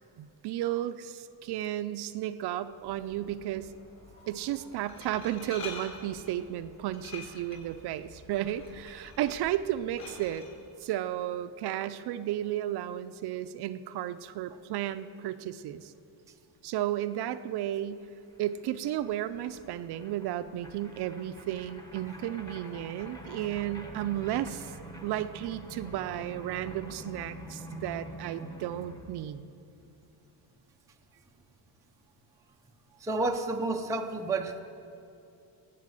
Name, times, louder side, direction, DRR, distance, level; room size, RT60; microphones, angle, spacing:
voice 1, 0.2-3.7 4.3-10.4 10.8-15.9 16.6-18.0 18.4-24.7 25.0-29.5, right 12 dB, 55° right, 12 dB, 0.5 m, -33 dB
Glass, 2.7-10.5, left 4 dB, 35° left, 3.6 m, -48 dB
sound 1, 18.0-18.1 18.3-29.2, equal, 10° left, 1.1 m, -46 dB
voice 2, 33.0-34.6, right 2 dB, 5° right, 3 dB, 0.4 m, -30 dB
18.0 x 8.7 x 7.6 m, 2.7 s
cardioid pair, 180°, 47 cm